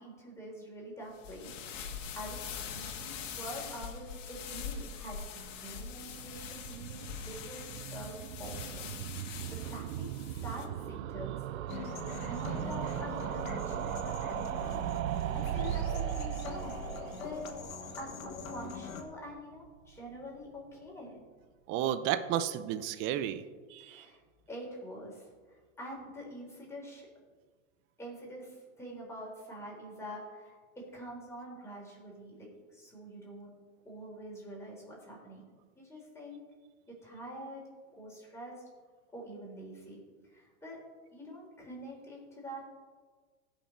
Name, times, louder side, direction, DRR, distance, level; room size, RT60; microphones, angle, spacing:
voice 1, 0.0-1.6 2.1-8.9 9.2-11.5 11.9-14.8 15.3-16.8 17.2-17.4 18.0-21.2 23.8-24.2 24.5-27.1 28.0-33.6 33.8-35.4 35.8-36.4 36.9-37.6 37.9-38.6 39.1-42.7, equal, 5° left, -4 dB, 3.5 m, -46 dB
sound 1, 1.1-10.7, left 7 dB, 65° left, 1.6 m, -43 dB
sound 2, 6.0-19.1 19.3-19.4 19.6-19.7 19.9-20.0, right 12 dB, 75° right, 0.6 m, -38 dB
sound 3, 11.7-19.0, left 5 dB, 90° left, 1.6 m, -43 dB
voice 2, 21.7-23.4 23.7-24.1, right 11 dB, 30° right, 12 dB, 0.5 m, -32 dB
16.0 x 5.9 x 4.3 m, 1.5 s
hypercardioid pair, 130°, 40 cm